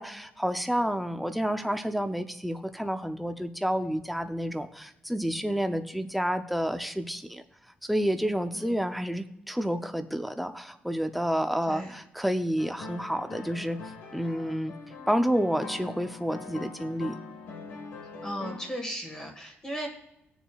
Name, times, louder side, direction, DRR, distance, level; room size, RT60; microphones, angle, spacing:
voice 1, 0.0-7.4 7.9-13.8 14.1-14.7 15.1-17.1, equal, ahead, 8 dB, 0.5 m, -29 dB
sound 1, 12.6-18.8, left 4 dB, 85° left, 1.4 m, -43 dB
voice 2, 18.2-19.9, equal, 20° left, 0 dB, 1.5 m, -36 dB
19.5 x 7.1 x 2.3 m, 0.83 s
cardioid pair, 175°, 4 cm